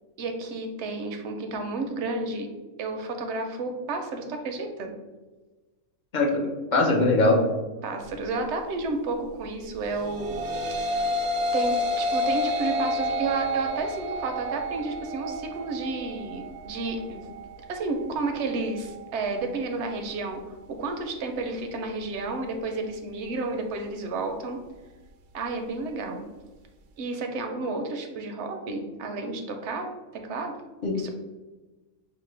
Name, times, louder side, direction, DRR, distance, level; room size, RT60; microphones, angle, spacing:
voice 1, 0.2-2.5 2.8-4.9 7.8-10.3 10.8-11.0 11.5-17.3 17.7-20.4 20.7-24.6 25.3-26.3 27.0-30.6 30.9-31.1, right 3 dB, 65° right, 4 dB, 0.8 m, -31 dB
voice 2, 6.1-7.4 30.8-31.0, left 2 dB, 45° left, 1 dB, 0.6 m, -21 dB
sound 1, 9.9-19.1, left 1 dB, 85° right, 1.0 m, -29 dB
5.9 x 2.1 x 3.2 m, 1.2 s
omnidirectional pair, 1.5 m